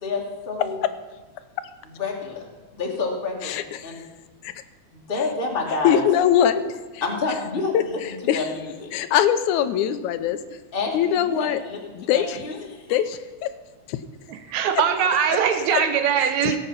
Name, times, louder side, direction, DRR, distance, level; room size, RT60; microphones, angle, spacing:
voice 1, 0.0-0.8 1.9-2.5 2.7-4.0 4.9-6.0 7.0-7.7 8.1-8.9 10.7-12.9, left 4 dB, 20° left, -1 dB, 1.8 m, -29 dB
voice 2, 3.4-4.0 4.4-4.5 5.8-6.7 7.7-8.4 8.9-10.6 10.9-11.6 11.9-12.4 12.9-13.5 15.7-15.8 16.4-16.6, left 10 dB, 80° left, 12 dB, 2.1 m, -22 dB
voice 3, 14.3-16.6, right 7 dB, 75° right, 8 dB, 2.4 m, -21 dB
16.5 x 8.1 x 5.7 m, 1.3 s
omnidirectional pair, 3.5 m